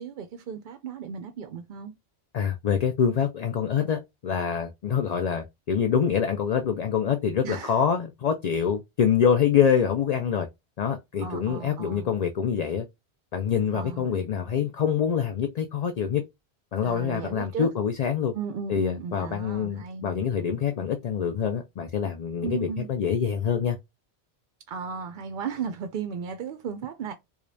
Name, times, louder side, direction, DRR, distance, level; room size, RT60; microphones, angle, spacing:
voice 1, 0.0-1.9 7.4-7.8 11.2-12.1 13.7-14.1 16.8-17.7 18.3-20.1 22.4-22.9 24.7-27.1, right 6 dB, 60° right, 0.6 m, -35 dB
voice 2, 2.3-10.5 10.8-12.8 13.3-16.2 16.7-18.3 18.7-23.8, left 7 dB, 55° left, 0.5 m, -25 dB
4.9 x 2.3 x 2.6 m
omnidirectional pair, 1.1 m